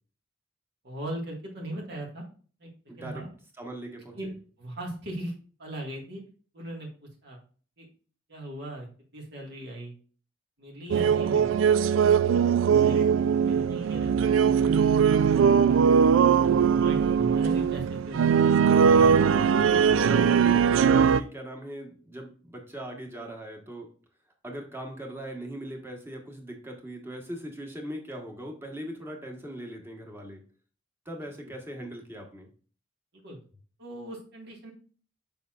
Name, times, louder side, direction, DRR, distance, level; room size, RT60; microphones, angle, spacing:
voice 1, 0.8-2.2 2.6-2.7 3.0-3.3 4.1-4.3 4.6-5.3 5.6-6.2 6.5-7.4 7.8-7.9 8.3-8.9 9.1-9.9 10.6-11.5 12.3-12.4 12.8-14.4 14.9-15.9 16.7-19.1 31.4-31.5 33.2-33.4 33.8-34.7, right 1 dB, 60° right, -1 dB, 1.8 m, -39 dB
voice 2, 2.9-3.2 3.6-4.3 18.9-23.9 24.4-30.4 31.0-32.5, right 1 dB, 15° right, 1 dB, 1.3 m, -39 dB
sound 1, 10.9-21.2, right 7 dB, 90° right, 0.3 m, -21 dB
6.9 x 6.0 x 2.5 m, 0.41 s
head